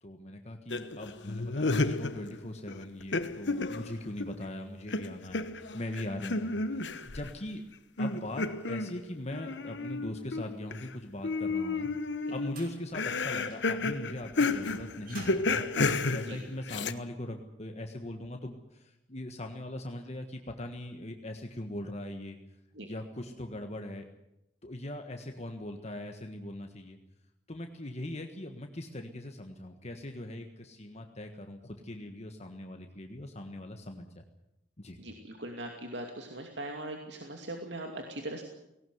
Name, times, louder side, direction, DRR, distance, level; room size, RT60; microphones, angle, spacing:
voice 1, 0.0-7.6 8.0-22.4 22.8-24.1 24.6-27.0 27.5-34.3 34.8-35.0, left 1 dB, 40° left, 5 dB, 1.5 m, -40 dB
sound 1, 0.7-2.4 2.7-4.5 4.9-7.3 8.0-10.9 11.2-16.9, left 3 dB, 80° left, 1.2 m, -32 dB
sound 2, 11.5-16.8, right 3 dB, 55° right, 6.2 m, -52 dB
voice 2, 35.0-38.4, right 1 dB, 80° right, 3 dB, 2.7 m, -40 dB
18.5 x 18.5 x 9.5 m, 0.87 s
head